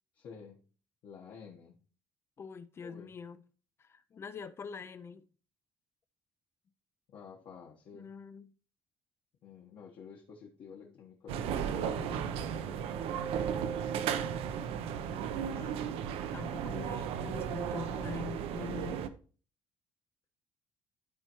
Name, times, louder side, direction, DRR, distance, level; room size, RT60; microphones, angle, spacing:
voice 1, 0.1-0.6 1.0-1.8 2.8-3.1 7.1-8.1 9.4-12.8 16.6-16.7, left 6 dB, 50° left, 1.1 m, -51 dB
voice 2, 2.4-3.4 3.8-5.2 7.9-8.5 10.8-10.9 14.8-15.0 15.5-15.9 16.3-19.1, left 6 dB, 25° left, 0.4 m, -45 dB
sound 1, 11.3-19.1, right 8 dB, 75° right, 0.6 m, -35 dB
13.0 x 4.4 x 3.0 m
cardioid pair, 175°, 10 cm